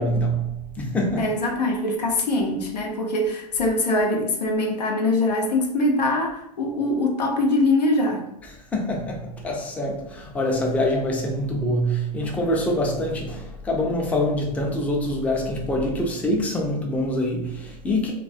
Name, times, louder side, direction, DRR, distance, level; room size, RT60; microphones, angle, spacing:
voice 1, 0.0-1.3 8.4-18.1, left 1 dB, 5° left, 0 dB, 0.4 m, -25 dB
voice 2, 1.2-8.2, left 2 dB, 85° left, 1 dB, 0.6 m, -23 dB
2.3 x 2.2 x 2.5 m, 0.80 s
hypercardioid pair, 105°, 21 cm